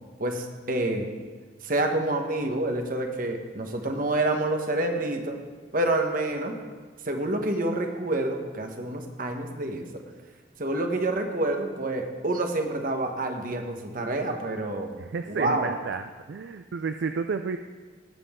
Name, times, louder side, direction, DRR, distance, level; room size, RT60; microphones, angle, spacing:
voice 1, 0.2-1.1 1.6-5.4 5.7-6.6 7.0-9.9 10.6-15.0 15.3-15.7, right 2 dB, 45° right, 4 dB, 1.2 m, -28 dB
voice 2, 15.0-17.6, right 5 dB, 65° right, 8 dB, 0.4 m, -31 dB
17.5 x 7.7 x 3.7 m, 1.5 s
head